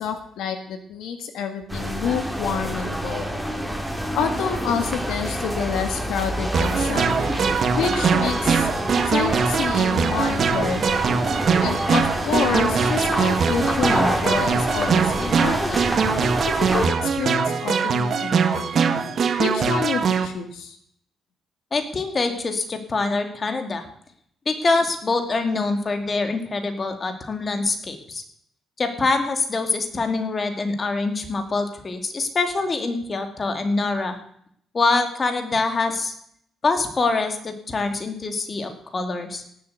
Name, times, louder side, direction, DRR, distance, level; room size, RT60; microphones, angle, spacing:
voice 1, 0.0-3.5 4.1-7.3 7.7-8.7 9.0-11.1 11.6-15.9 16.4-19.0 19.4-20.8, left 7 dB, 85° left, 7 dB, 1.7 m, -28 dB
sound 1, 1.7-16.9, equal, ahead, 2.8 m, -27 dB
sound 2, 6.5-20.3, right 6 dB, 55° right, 1.8 m, -22 dB
voice 2, 21.7-23.8 24.5-28.2 28.8-34.2 34.7-36.1 36.6-39.4, left 3 dB, 35° left, 6 dB, 2.6 m, -24 dB
17.5 x 7.9 x 8.1 m, 0.68 s
cardioid pair, 90°, 0 cm